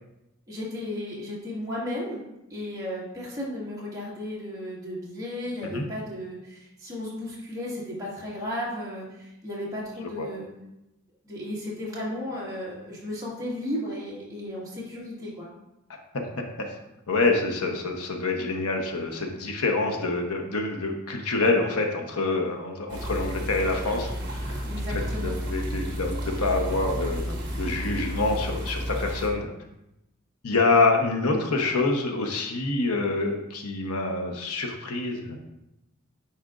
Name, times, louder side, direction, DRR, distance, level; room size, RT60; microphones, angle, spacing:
voice 1, 0.5-2.2 2.5-10.5 11.2-15.5 24.7-25.4 31.0-31.5, left 1 dB, 15° right, -7 dB, 1.8 m, -34 dB
voice 2, 17.1-24.6 25.2-29.5 30.4-35.5, left 3 dB, 80° left, 3 dB, 0.9 m, -26 dB
sound 1, 22.9-29.3, equal, 50° right, 1.2 m, -32 dB
9.8 x 4.3 x 2.5 m, 0.89 s
head